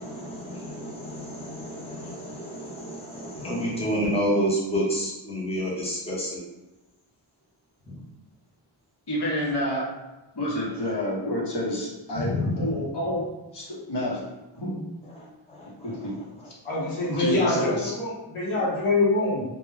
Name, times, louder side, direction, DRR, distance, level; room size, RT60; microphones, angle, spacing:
voice 1, 0.0-6.4 7.9-8.0 12.1-12.6 15.1-16.1, equal, 10° left, -6 dB, 0.8 m, -29 dB
voice 2, 9.1-9.9 10.3-13.3 13.5-14.3 14.6-14.8 15.8-16.2 16.4-16.5 17.1-17.9, equal, 55° left, -5 dB, 0.9 m, -29 dB
voice 3, 16.6-19.4, left 2 dB, 85° left, -5 dB, 0.8 m, -25 dB
2.3 x 2.1 x 3.2 m, 1.0 s
wide cardioid pair, 75°, 49 cm